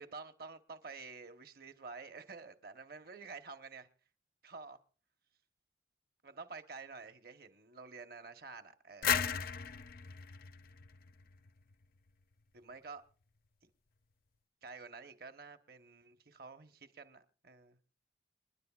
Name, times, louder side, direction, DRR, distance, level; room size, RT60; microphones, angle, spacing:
voice 1, 0.0-3.9 4.4-4.8 6.2-9.3 12.5-13.0 14.6-17.8, right 4 dB, 55° right, 1.0 m, -50 dB
sound 1, 9.0-11.7, left 8 dB, 55° left, 0.5 m, -36 dB
28.0 x 10.5 x 2.4 m
head